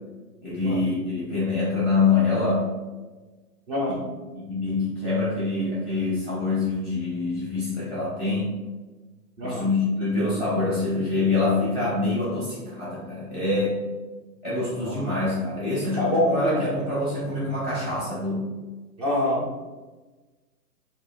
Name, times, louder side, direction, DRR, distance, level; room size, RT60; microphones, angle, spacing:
voice 1, 0.4-2.6 4.3-8.5 9.4-13.8 14.4-18.4, left 3 dB, 10° right, -10 dB, 0.4 m, -25 dB
voice 2, 3.7-4.0 9.4-9.7 14.8-15.0 15.6-16.7 19.0-19.5, left 1 dB, 25° right, -2 dB, 0.8 m, -26 dB
3.0 x 2.7 x 4.3 m, 1.2 s
hypercardioid pair, 155°, 47 cm